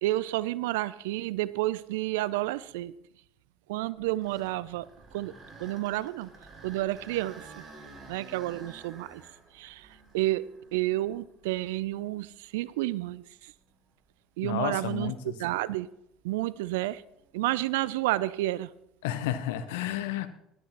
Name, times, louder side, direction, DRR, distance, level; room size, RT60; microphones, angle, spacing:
voice 1, 0.0-2.9 3.7-4.9 5.1-5.3 5.6-6.3 6.6-7.5 8.1-9.2 9.5-9.9 10.1-13.5 14.4-15.9 16.2-17.0 17.3-18.7, right 17 dB, 75° right, 19 dB, 0.3 m, -30 dB
sound 1, 3.9-12.0 12.6-12.7 13.4-13.6 17.1-17.4, right 3 dB, 40° right, 4.0 m, -51 dB
voice 2, 14.4-15.3 19.0-20.3, left 11 dB, 75° left, 12 dB, 0.8 m, -31 dB
17.0 x 11.5 x 2.9 m, 0.79 s
hypercardioid pair, 70°, 0 cm